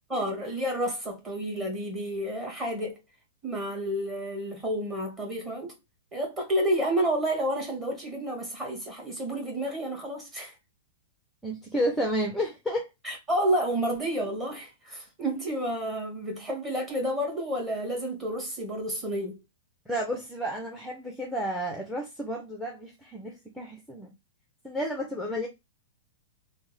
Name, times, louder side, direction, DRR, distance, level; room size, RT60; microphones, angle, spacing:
voice 1, 0.1-3.0 3.4-5.7 6.1-10.5 13.0-19.4, right 1 dB, 15° right, 1.6 m, -30 dB
voice 2, 11.4-12.9 19.9-24.1 24.6-25.5, equal, ahead, 0.6 m, -31 dB
3.4 x 2.1 x 3.2 m
hypercardioid pair, 145°, 0 cm